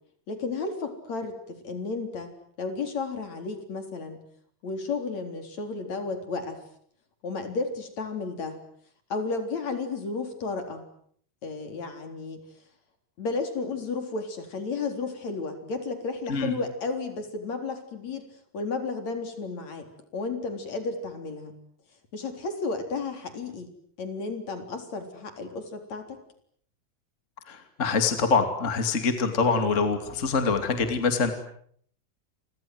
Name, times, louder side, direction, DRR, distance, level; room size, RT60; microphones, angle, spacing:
voice 1, 0.3-2.3 2.6-4.2 4.6-6.6 7.2-8.6 9.1-10.9 11.4-12.4 13.2-18.3 18.5-19.9 20.1-21.5 22.1-23.7 24.0-26.2, left 4 dB, 55° left, 7 dB, 5.1 m, -33 dB
voice 2, 27.5-31.3, left 4 dB, 25° left, 7 dB, 2.7 m, -25 dB
30.0 x 25.0 x 8.0 m, 0.64 s
omnidirectional pair, 3.8 m